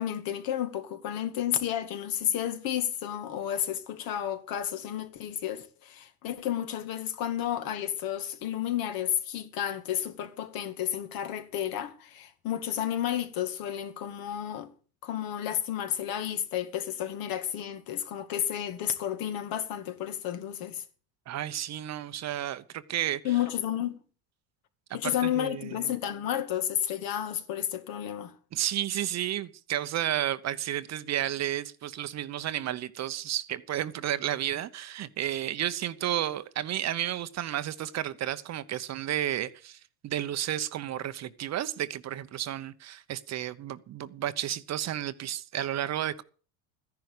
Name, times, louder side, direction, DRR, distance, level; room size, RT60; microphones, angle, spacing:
voice 1, 0.0-14.7 15.0-20.8 23.2-24.0 24.9-28.3, left 10 dB, 60° left, 2.2 m, -31 dB
voice 2, 21.3-23.2 25.0-25.8 28.5-46.2, right 12 dB, 40° right, 1.0 m, -32 dB
14.0 x 10.5 x 6.8 m
supercardioid pair, 110°, 40 cm